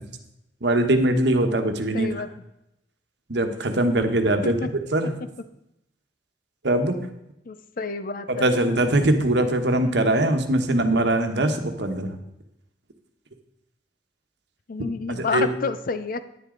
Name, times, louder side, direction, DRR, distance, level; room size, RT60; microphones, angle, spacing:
voice 1, 0.6-2.1 3.3-4.6 4.9-5.1 6.6-7.0 8.3-12.1 15.1-15.5, right 1 dB, 65° right, 6 dB, 1.2 m, -21 dB
voice 2, 1.9-2.3 4.4-4.7 7.5-8.5 14.7-16.2, left 4 dB, 50° left, 12 dB, 0.6 m, -29 dB
10.5 x 9.9 x 3.8 m, 0.85 s
head